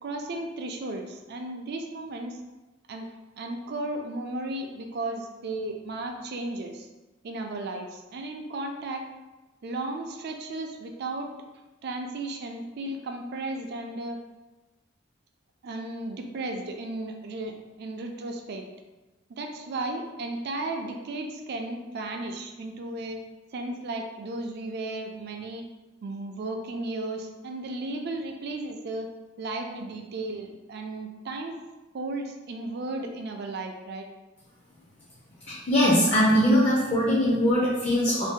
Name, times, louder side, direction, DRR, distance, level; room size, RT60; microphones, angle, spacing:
voice 1, 0.0-2.4 2.9-3.1 3.4-6.9 7.2-9.0 9.6-11.3 11.8-14.2 15.6-18.7 19.3-23.2 23.5-25.6 26.0-29.1 29.4-31.6 31.9-34.1, right 2 dB, 55° right, 3 dB, 0.4 m, -34 dB
voice 2, 35.5-38.3, equal, 35° left, -5 dB, 0.5 m, -21 dB
2.6 x 2.1 x 3.6 m, 1.1 s
head